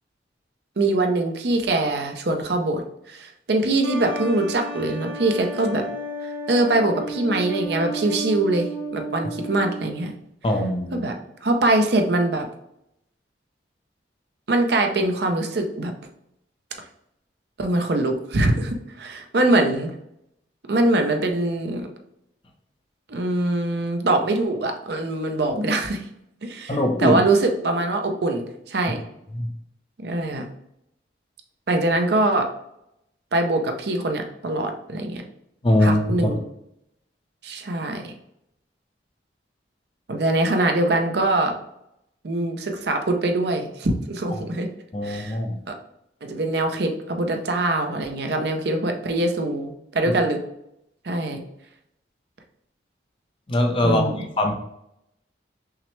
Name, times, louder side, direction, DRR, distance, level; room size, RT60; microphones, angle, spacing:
voice 1, 0.8-5.9 6.2-10.1 10.9-11.2 11.4-12.5 14.5-15.9 17.6-19.9 20.7-21.9 23.1-26.0 26.4-29.0 30.0-30.5 31.7-32.5 33.3-35.2 35.8-36.4 37.4-38.1 40.1-41.5 42.2-44.7 45.0-45.4 45.7-45.8 46.2-50.4 51.0-51.4 53.8-54.3, right 2 dB, 60° right, 5 dB, 0.5 m, -23 dB
sound 1, 3.8-10.1, right 2 dB, 85° right, 1.3 m, -33 dB
voice 2, 10.4-11.1 26.7-27.2 29.3-29.5 35.6-36.3 44.9-45.6 53.5-54.1 54.4-54.5, left 1 dB, 25° left, 3 dB, 0.5 m, -21 dB
5.7 x 2.1 x 3.2 m, 0.79 s
head